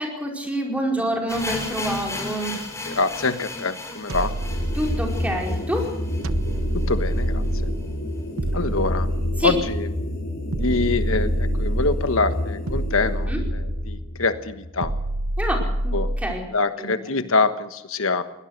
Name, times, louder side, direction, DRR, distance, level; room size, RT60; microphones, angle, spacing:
voice 1, 0.0-2.6 4.7-5.9 9.4-9.5 13.3-13.4 15.4-16.4 16.8-16.9, equal, 5° right, 1 dB, 4.9 m, -27 dB
sound 1, 1.3-7.2 7.5-7.6 7.8-7.9 8.5-8.6, left 2 dB, 15° left, 4.6 m, -35 dB
voice 2, 2.8-4.3 6.7-7.7 8.5-9.1 9.4-9.9 10.5-14.9 15.9-16.1 16.5-18.2, left 3 dB, 75° left, 10 dB, 1.3 m, -25 dB
sound 2, 4.1-5.4 6.2-7.9 8.4-9.8 10.5-12.1 12.7-14.1 14.8-16.4, right 1 dB, 80° right, 1.0 m, -27 dB
sound 3, 4.3-15.6, left 1 dB, 50° left, 6.5 m, -29 dB
21.5 x 18.0 x 6.6 m, 0.89 s
head